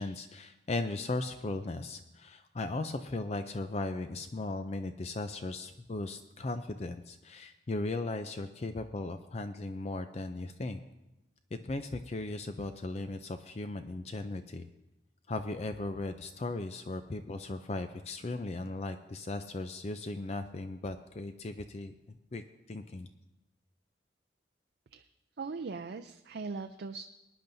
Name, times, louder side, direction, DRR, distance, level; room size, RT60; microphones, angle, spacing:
voice 1, 0.0-10.8 11.5-14.7 15.3-21.9 22.3-22.4 22.7-23.1, left 2 dB, 35° left, 8 dB, 0.4 m, -37 dB
voice 2, 25.4-27.1, right 4 dB, 65° right, 6 dB, 0.4 m, -40 dB
20.5 x 10.5 x 2.7 m, 0.95 s
head